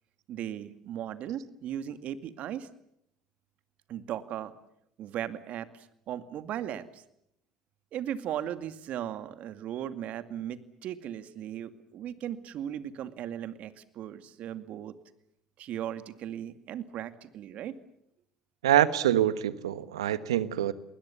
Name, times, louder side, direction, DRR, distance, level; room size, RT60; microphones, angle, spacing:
voice 1, 0.3-2.7 3.9-4.5 5.0-7.0 7.9-14.9 15.6-17.8, right 10 dB, 60° right, 11 dB, 2.2 m, -37 dB
voice 2, 18.6-20.7, right 11 dB, 90° right, 14 dB, 1.3 m, -25 dB
29.5 x 21.0 x 7.2 m, 0.74 s
hypercardioid pair, 70°, 3 cm